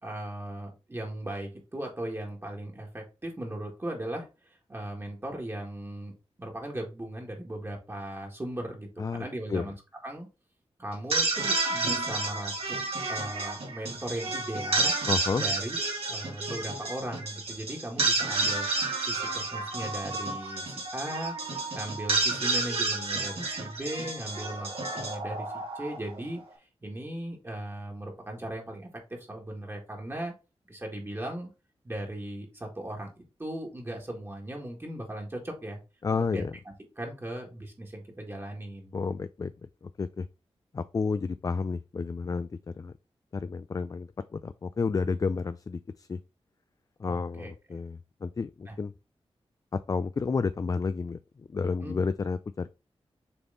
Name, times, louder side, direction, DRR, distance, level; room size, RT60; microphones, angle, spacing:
voice 1, 0.0-6.1 6.4-9.7 10.0-10.3 10.8-12.8 13.1-14.9 15.3-15.8 16.1-21.4 21.7-30.3 30.7-31.5 31.8-35.8 36.1-36.4 37.0-38.9 47.1-47.5 48.7-48.8 51.8-52.0, right 1 dB, 25° right, 1.8 m, -38 dB
voice 2, 9.0-9.7 15.1-15.4 36.0-36.5 38.9-39.5 40.0-40.3 40.7-42.9 43.3-46.2 47.0-48.9 49.9-51.2 51.5-52.7, left 4 dB, 35° left, 0.3 m, -31 dB
sound 1, 10.9-26.2, right 3 dB, 75° right, 2.6 m, -30 dB
7.0 x 3.6 x 3.8 m
wide cardioid pair, 115°, 10 cm